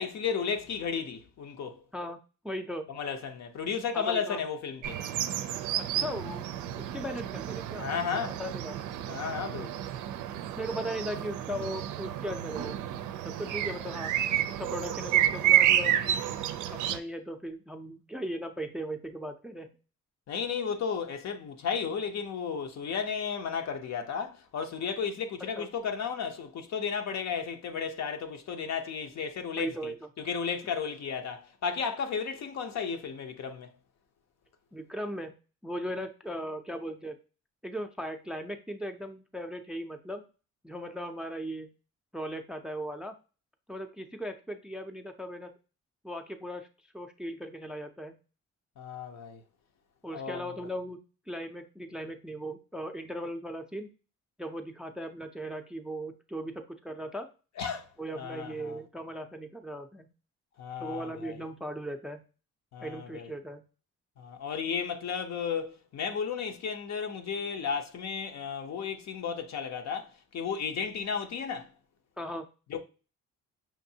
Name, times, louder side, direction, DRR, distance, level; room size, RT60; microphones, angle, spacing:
voice 1, 0.0-1.8 2.9-5.0 7.8-8.4 9.1-9.8 20.3-33.7 48.8-49.4 50.1-50.5 57.6-57.9 58.2-58.8 60.6-61.4 62.7-63.3 64.2-71.7 72.7-72.8, left 6 dB, 60° left, 0.8 m, -34 dB
voice 2, 2.4-2.9 3.9-4.4 5.8-6.5 6.8-8.8 10.6-12.8 13.2-14.1 14.5-16.1 16.7-19.7 25.5-25.7 29.6-30.0 34.7-35.3 35.6-37.2 37.6-40.2 40.6-41.7 42.1-43.1 43.7-45.5 46.0-46.7 46.9-48.2 50.0-51.0 51.3-53.9 54.4-57.3 58.0-60.1 60.8-62.2 62.8-63.6 72.2-72.5, equal, 5° right, 0.4 m, -38 dB
sound 1, 4.8-17.0, right 11 dB, 80° right, 0.5 m, -30 dB
5.9 x 2.6 x 2.7 m
cardioid pair, 90°, 30 cm